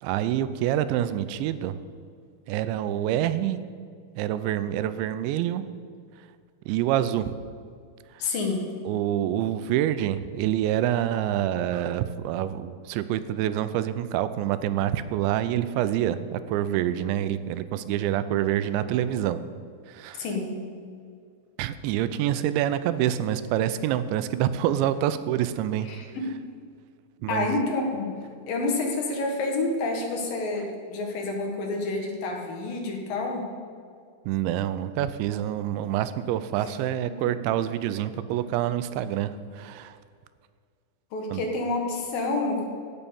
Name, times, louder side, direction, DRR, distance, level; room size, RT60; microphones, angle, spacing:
voice 1, 0.0-1.8 2.5-3.6 4.2-5.6 6.7-7.4 8.1-8.3 8.9-19.4 19.9-20.3 21.6-25.9 27.2-27.6 34.3-40.0 41.3-41.4, right 11 dB, 90° right, 13 dB, 3.0 m, -27 dB
voice 2, 8.2-8.7 20.1-20.6 25.8-26.4 27.3-33.5 37.1-37.3 41.1-42.7, left 2 dB, 60° left, 1 dB, 3.0 m, -29 dB
16.5 x 6.8 x 7.0 m, 2.1 s
omnidirectional pair, 5.1 m